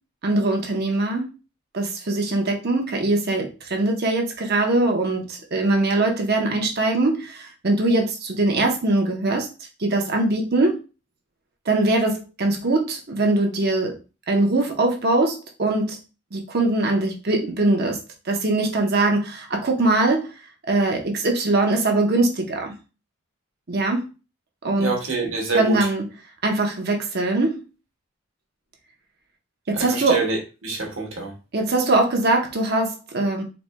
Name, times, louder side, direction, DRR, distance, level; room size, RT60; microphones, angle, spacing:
voice 1, 0.2-1.3 1.7-9.5 9.8-10.8 11.7-14.0 14.3-16.0 16.3-18.0 18.3-20.3 20.7-22.7 23.7-24.0 24.6-24.9 25.5-26.0 26.4-27.6 29.7-30.2 31.5-33.4, right 2 dB, 50° right, 0.8 m, -22 dB
voice 2, 24.8-25.9 29.7-30.4 30.6-31.4, right 3 dB, 70° right, 1.2 m, -26 dB
4.1 x 3.2 x 2.2 m
head